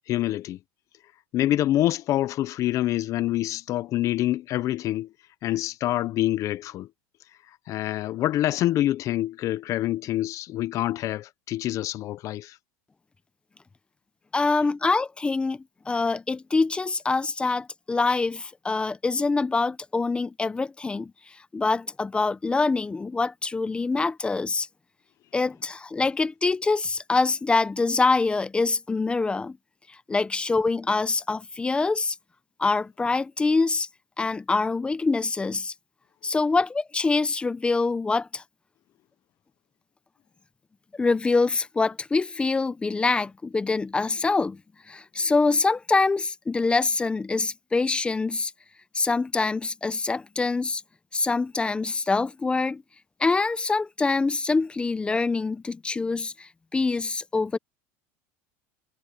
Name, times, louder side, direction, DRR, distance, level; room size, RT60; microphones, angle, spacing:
voice 1, 0.1-0.6 1.3-5.1 5.4-6.9 7.7-12.6, left 14 dB, 45° left, 0.9 m, -26 dB
voice 2, 14.3-21.1 21.5-24.7 25.3-29.6 29.9-32.2 32.6-33.9 34.2-35.7 36.2-38.4 40.9-44.6 44.9-48.5 48.9-50.8 51.1-52.8 53.2-57.6, left 3 dB, 15° left, 0.9 m, -25 dB
supercardioid pair, 120°, 7 cm